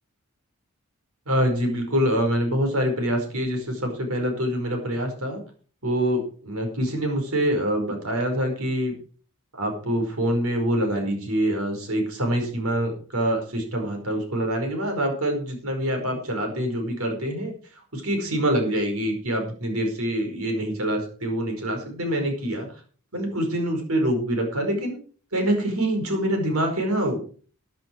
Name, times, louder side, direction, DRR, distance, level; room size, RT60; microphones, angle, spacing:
voice 1, 1.3-5.4 5.8-8.9 9.5-22.7 23.1-25.0 25.3-27.2, equal, 70° right, 4 dB, 5.0 m, -25 dB
14.0 x 10.5 x 4.7 m, 0.42 s
head